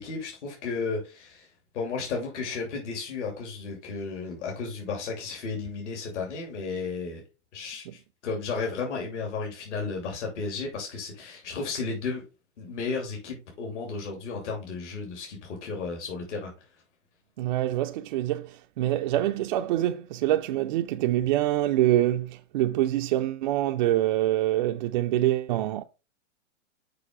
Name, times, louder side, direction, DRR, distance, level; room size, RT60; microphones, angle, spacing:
voice 1, 0.0-1.5 1.7-7.2 7.5-12.2 12.6-16.5, left 4 dB, 65° left, 2.8 m, -33 dB
voice 2, 17.4-25.8, right 14 dB, 40° right, 0.4 m, -25 dB
6.7 x 5.2 x 3.7 m
hypercardioid pair, 135°, 37 cm